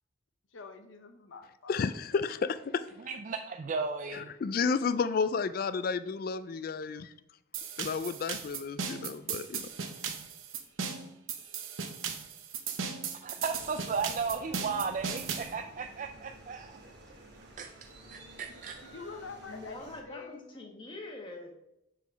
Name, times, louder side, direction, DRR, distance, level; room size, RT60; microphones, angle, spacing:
voice 1, 0.5-1.8 2.3-2.5 3.0-3.2 18.8-20.5, left 4 dB, 75° left, 7 dB, 0.7 m, -46 dB
voice 2, 1.7-2.8 4.1-7.1 7.8-9.7, left 5 dB, 50° left, 13 dB, 0.3 m, -31 dB
voice 3, 3.1-4.3 13.2-16.8 17.6-17.7 18.1-18.8, right 5 dB, 40° right, 5 dB, 0.3 m, -35 dB
sound 1, 7.5-15.5, right 6 dB, 85° right, 0.8 m, -37 dB
sound 2, 13.5-20.0, right 1 dB, 55° right, 1.2 m, -52 dB
voice 4, 19.5-21.5, left 2 dB, 25° left, 1 dB, 1.2 m, -44 dB
7.3 x 4.0 x 5.1 m, 0.83 s
head